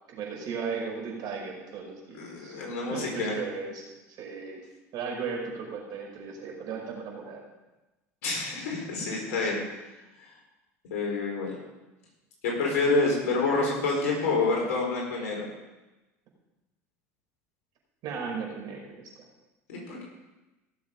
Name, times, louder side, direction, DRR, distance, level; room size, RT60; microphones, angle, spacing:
voice 1, 0.1-2.5 2.9-4.6 4.9-7.4 18.0-18.9, right 5 dB, 55° right, -2 dB, 5.4 m, -36 dB
voice 2, 2.1-3.3 8.2-9.6 10.9-11.5 12.4-15.4 19.7-20.0, left 3 dB, 70° left, -1 dB, 4.8 m, -27 dB
17.0 x 7.4 x 5.4 m, 1.1 s
hypercardioid pair, 80°, 8 cm